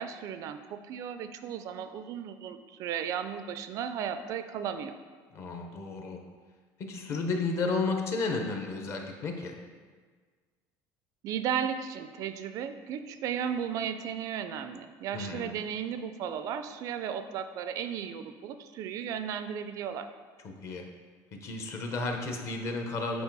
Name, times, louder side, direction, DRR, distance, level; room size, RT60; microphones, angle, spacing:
voice 1, 0.0-4.9 11.2-20.1, right 8 dB, 45° right, 9 dB, 0.3 m, -35 dB
voice 2, 5.3-6.2 6.8-9.5 15.1-15.5 20.4-20.8 21.4-23.2, left 3 dB, 35° left, 4 dB, 0.8 m, -32 dB
8.1 x 4.5 x 4.6 m, 1.5 s
cardioid pair, 175°, 8 cm